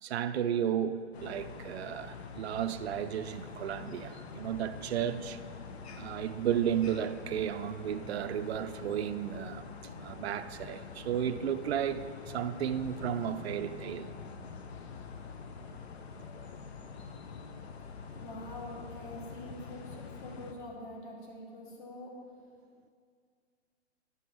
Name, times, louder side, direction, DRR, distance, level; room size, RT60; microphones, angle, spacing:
voice 1, 0.0-5.4 6.0-9.7 10.0-14.1, right 9 dB, 60° right, 10 dB, 0.5 m, -33 dB
sound 1, 1.1-20.5, left 5 dB, 60° left, 0.8 m, -45 dB
voice 2, 18.1-22.1, left 1 dB, 45° left, -2 dB, 2.1 m, -45 dB
11.5 x 5.5 x 4.6 m, 2.1 s
hypercardioid pair, 145°, 35 cm